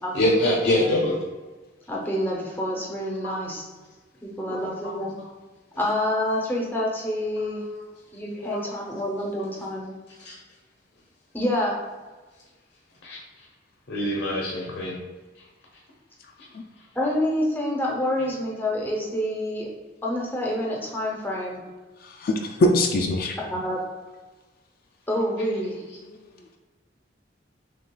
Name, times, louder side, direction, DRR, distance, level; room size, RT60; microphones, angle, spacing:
voice 1, 0.1-1.2 3.2-3.4 4.5-4.9 8.4-8.8 10.2-10.4 13.0-13.2 13.9-15.0, left 1 dB, 80° left, -3 dB, 0.7 m, -25 dB
voice 2, 1.9-3.6 4.2-5.2 5.8-7.6 8.1-9.9 11.3-11.8 16.9-19.7 20.0-21.6 23.5-23.8 25.1-25.8, left 1 dB, 10° left, -3 dB, 0.7 m, -27 dB
voice 3, 22.0-23.4, left 1 dB, 55° left, 2 dB, 0.4 m, -22 dB
6.3 x 2.3 x 2.2 m, 1.3 s
head